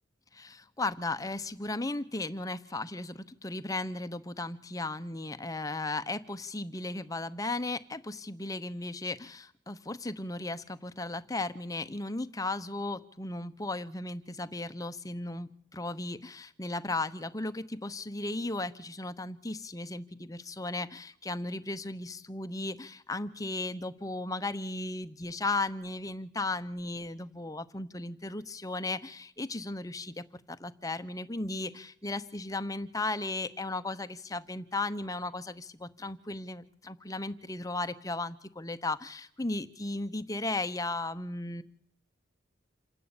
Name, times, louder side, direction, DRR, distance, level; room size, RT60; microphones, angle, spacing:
voice 1, 0.3-41.6, left 2 dB, 20° left, 12 dB, 0.9 m, -36 dB
27.5 x 11.5 x 8.8 m, 0.65 s
head